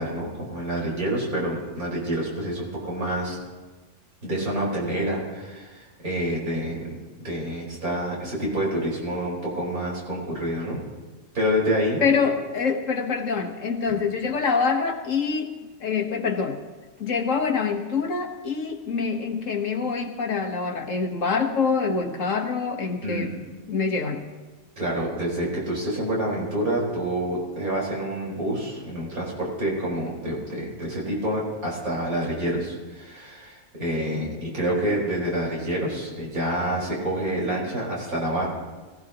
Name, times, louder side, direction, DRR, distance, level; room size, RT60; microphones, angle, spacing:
voice 1, 0.0-3.4 4.2-7.0 7.2-10.8 11.3-12.0 13.9-14.0 23.0-23.3 24.8-38.5, right 1 dB, 75° right, -4 dB, 5.1 m, -27 dB
voice 2, 12.0-16.6 17.0-23.4 23.7-24.3, left 5 dB, 60° left, 4 dB, 1.6 m, -25 dB
23.0 x 16.5 x 2.9 m, 1.3 s
omnidirectional pair, 1.5 m